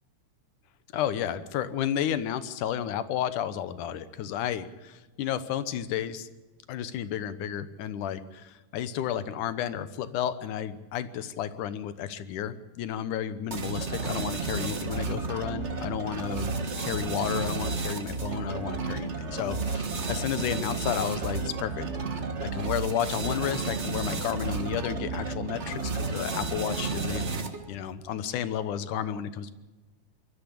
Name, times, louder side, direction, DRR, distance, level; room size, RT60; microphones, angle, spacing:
voice 1, 0.9-6.3 6.7-21.9 22.4-27.2 27.7-29.5, left 9 dB, 70° left, 13 dB, 2.5 m, -32 dB
sound 1, 13.5-27.7, right 4 dB, 45° right, 0.8 m, -32 dB
22.5 x 13.5 x 8.6 m, 1.2 s
omnidirectional pair, 3.9 m